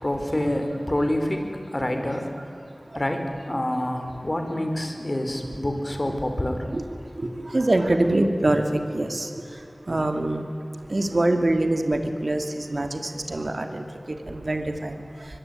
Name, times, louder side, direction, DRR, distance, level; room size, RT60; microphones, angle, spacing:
voice 1, 0.0-2.3 2.9-6.7, left 1 dB, 40° left, 5 dB, 4.5 m, -27 dB
voice 2, 7.2-9.3 9.9-10.5 10.9-15.0, right 1 dB, 65° right, 6 dB, 2.6 m, -24 dB
24.5 x 22.5 x 9.3 m, 2.6 s
wide cardioid pair, 45°, 0 cm